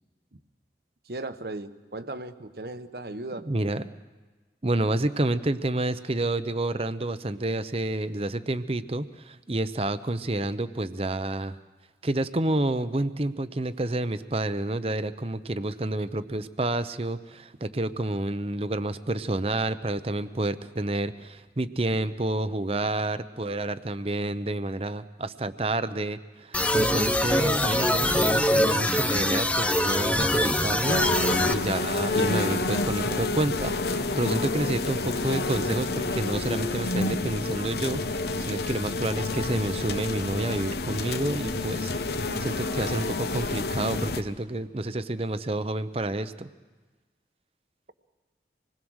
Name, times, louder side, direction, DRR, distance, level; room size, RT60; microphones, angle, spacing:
voice 1, 1.1-3.5, right 2 dB, 60° right, 10 dB, 1.1 m, -37 dB
voice 2, 3.3-3.9 4.6-11.6 12.0-41.9 42.4-46.5, right 2 dB, 35° right, 12 dB, 0.7 m, -29 dB
sound 1, 26.5-31.5, left 1 dB, 10° left, 0.6 m, -23 dB
sound 2, 30.9-44.2, left 2 dB, 65° left, 1.0 m, -29 dB
26.5 x 20.5 x 6.4 m, 1.3 s
head